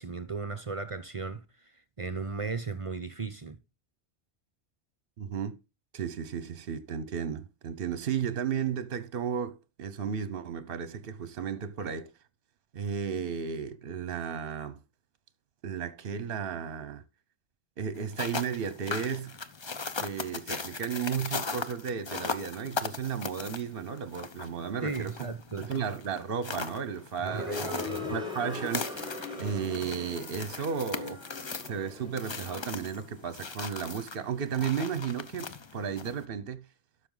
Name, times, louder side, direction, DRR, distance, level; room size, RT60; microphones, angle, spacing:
voice 1, 0.0-3.6 24.8-25.7 27.2-28.2, right 4 dB, 35° right, 0.7 m, -36 dB
voice 2, 5.2-5.6 5.9-12.1 12.7-14.8 15.6-17.0 17.8-19.3 19.9-25.3 25.6-27.7 28.1-31.2 31.6-36.6, right 7 dB, 60° right, 1.0 m, -34 dB
sound 1, 18.0-36.2, left 4 dB, 30° left, 0.6 m, -39 dB
sound 2, 27.2-33.1, left 3 dB, 5° right, 2.7 m, -40 dB
12.0 x 6.3 x 3.9 m
omnidirectional pair, 1.1 m